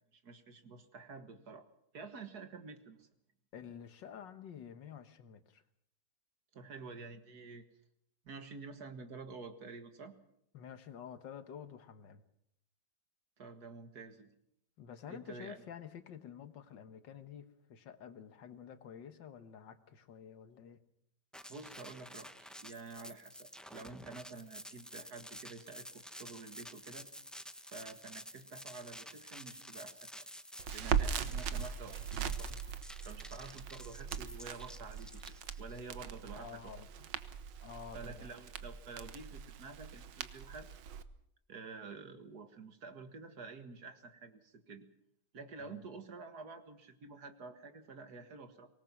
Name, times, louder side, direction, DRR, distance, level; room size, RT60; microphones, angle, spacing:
voice 1, 0.1-1.7 1.9-3.1 6.5-7.7 8.2-10.2 13.4-14.3 15.1-15.6 21.5-27.1 27.7-30.3 30.7-32.5 33.0-35.2 35.6-36.7 37.9-40.7 41.5-44.9 45.3-48.7, right 4 dB, 60° right, 8 dB, 2.2 m, -49 dB
voice 2, 3.5-5.6 10.5-12.2 14.8-20.8 36.4-37.1 37.6-38.4 45.6-45.9, left 8 dB, 85° left, 10 dB, 2.0 m, -50 dB
sound 1, 21.3-35.8, equal, ahead, 0.4 m, -51 dB
Crackle, 30.6-41.0, right 7 dB, 90° right, 1.7 m, -40 dB
24.0 x 19.0 x 6.1 m, 0.76 s
omnidirectional pair, 1.9 m